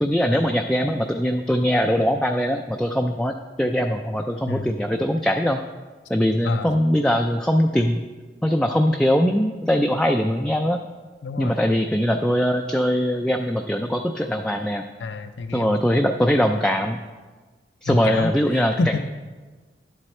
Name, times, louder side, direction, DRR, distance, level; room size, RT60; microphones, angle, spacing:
voice 1, 0.0-5.6 6.1-8.0 8.4-10.8 11.4-14.8 15.5-17.0 17.8-19.0, equal, 5° left, 3 dB, 0.3 m, -21 dB
voice 2, 11.2-11.6 15.0-15.8 17.9-19.0, left 3 dB, 90° left, 8 dB, 0.5 m, -28 dB
11.0 x 7.8 x 4.3 m, 1.4 s
head